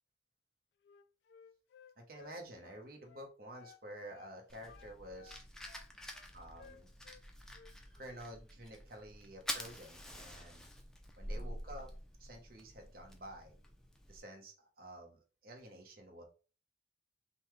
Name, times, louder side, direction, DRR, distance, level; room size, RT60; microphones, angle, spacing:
Wind instrument woodwind instrument, 0.8-3.8 4.1-4.3 4.7-7.2 7.5-8.2, left 6 dB, 75° left, 0.3 m, -59 dB
voice 1, 2.0-5.4 6.3-6.9 7.9-10.7 11.2-11.9 12.2-13.5 14.1-16.2, right 1 dB, 55° right, 2 dB, 1.0 m, -50 dB
Fire, 4.5-14.2, equal, 5° left, 0.5 m, -47 dB
5.4 x 2.2 x 3.1 m, 0.36 s
head